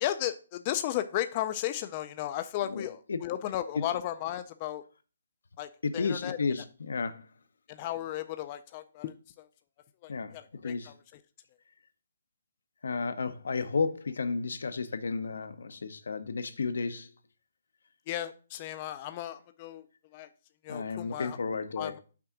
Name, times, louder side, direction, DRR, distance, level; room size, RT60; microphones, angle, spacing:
voice 1, 0.0-4.8 5.6-6.4 7.7-9.5 10.0-10.9 18.1-19.8 20.1-20.3 20.6-21.4 21.8-22.0, left 13 dB, 25° left, 0.3 m, -35 dB
voice 2, 2.7-3.2 5.8-7.3 10.1-10.9 12.8-17.1 20.7-22.0, left 4 dB, 80° left, 0.7 m, -33 dB
5.9 x 3.6 x 5.8 m
hypercardioid pair, 170°, 0 cm